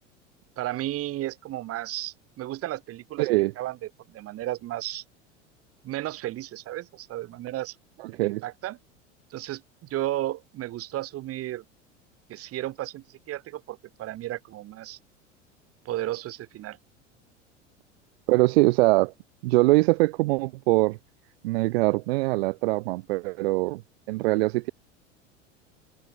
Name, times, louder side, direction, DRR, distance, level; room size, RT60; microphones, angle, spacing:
voice 1, 0.6-3.3 3.6-3.8 4.1-5.0 5.8-7.8 8.2-8.8 9.3-9.6 9.9-11.6 12.3-15.0 15.9-16.8, right 15 dB, 40° right, 3.8 m, -33 dB
voice 2, 3.2-3.5 8.0-8.4 18.3-19.1 19.4-21.0 21.4-23.8 24.1-24.7, right 22 dB, 55° right, 1.7 m, -22 dB
open air
figure-of-eight pair, 80°, 37 cm